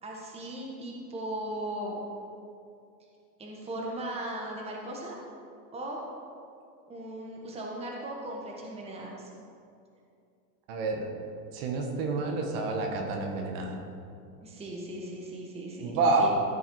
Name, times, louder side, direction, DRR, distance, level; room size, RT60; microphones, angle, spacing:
voice 1, 0.0-2.0 3.4-5.1 5.7-6.0 6.9-9.3 14.4-15.9 16.2-16.3, right 1 dB, 10° right, -2 dB, 1.4 m, -37 dB
voice 2, 10.7-11.1 11.5-13.8 15.8-16.3, right 3 dB, 50° right, 2 dB, 1.5 m, -28 dB
14.5 x 5.4 x 4.8 m, 2.5 s
supercardioid pair, 130°, 50 cm